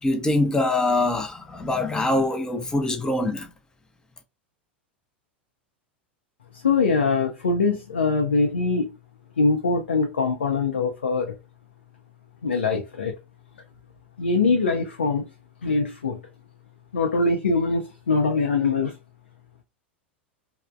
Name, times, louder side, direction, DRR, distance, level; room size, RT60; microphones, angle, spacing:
voice 1, 0.0-3.5, left 2 dB, 10° left, 0.5 m, -24 dB
voice 2, 6.5-8.9 9.4-11.4 12.4-13.1 14.2-15.3 15.6-16.2 16.9-19.0, left 4 dB, 75° left, 0.5 m, -23 dB
3.2 x 2.0 x 2.4 m
figure-of-eight pair, 85°, 6 cm